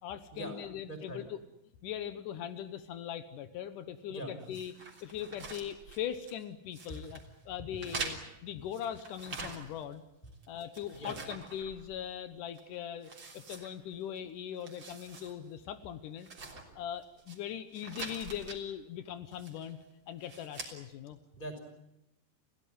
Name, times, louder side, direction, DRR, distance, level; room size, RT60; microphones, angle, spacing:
voice 1, 0.0-1.4 1.8-4.7 5.0-7.2 7.5-10.0 10.5-16.3 16.8-19.8 20.1-21.2, left 9 dB, 90° left, 11 dB, 1.8 m, -40 dB
voice 2, 0.8-1.2 4.1-4.3 6.9-7.0 7.4-7.5 10.9-11.2 21.3-21.6, right 1 dB, 10° left, 4 dB, 5.2 m, -42 dB
sound 1, 4.5-6.4 6.7-7.3 7.8-9.9 10.3-12.2 12.5-12.6 13.0-14.2 14.5-15.3 15.6-15.7 16.2-17.4 17.7-18.6 19.3-19.7 20.2-20.7, right 4 dB, 30° right, 3.6 m, -45 dB
29.0 x 17.0 x 9.4 m, 0.87 s
omnidirectional pair, 5.3 m